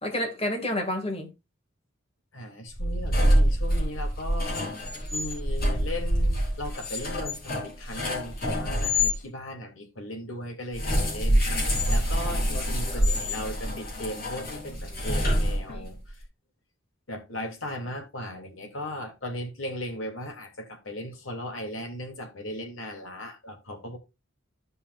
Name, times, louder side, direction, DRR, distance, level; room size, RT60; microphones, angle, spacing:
voice 1, 0.0-1.3 12.5-13.1 14.9-15.0 15.7-15.8, left 1 dB, 30° left, 2.1 m, -31 dB
voice 2, 2.3-4.7 5.1-16.1 17.1-24.0, left 1 dB, 85° left, 2.7 m, -37 dB
sound 1, 2.7-9.1 10.7-16.0, equal, 45° left, 3.9 m, -26 dB
14.5 x 5.5 x 2.4 m
head